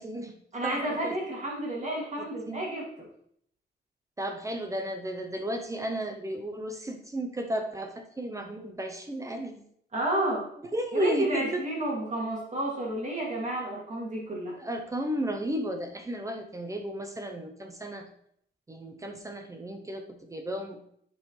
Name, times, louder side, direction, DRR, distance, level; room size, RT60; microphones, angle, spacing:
voice 1, 0.0-0.3 0.6-1.2 2.2-2.7 4.2-9.6 10.7-11.6 14.6-18.1 18.7-20.8, right 1 dB, 15° right, 4 dB, 0.7 m, -34 dB
voice 2, 0.5-2.9 9.9-10.5 10.9-14.6, right 1 dB, 40° right, -4 dB, 2.8 m, -31 dB
10.0 x 5.5 x 3.2 m, 0.68 s
wide cardioid pair, 170°, 18 cm